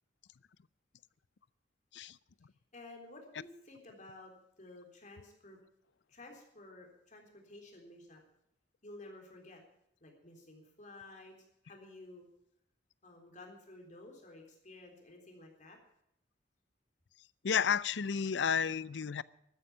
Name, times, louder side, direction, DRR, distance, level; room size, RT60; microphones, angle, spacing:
voice 1, 2.7-5.6 6.1-8.2 8.8-9.6 10.0-11.4 11.6-12.3 13.0-15.8, left 2 dB, 45° left, 2 dB, 3.7 m, -53 dB
voice 2, 17.4-19.2, left 7 dB, 70° left, 20 dB, 0.5 m, -31 dB
13.5 x 9.7 x 8.5 m, 0.77 s
head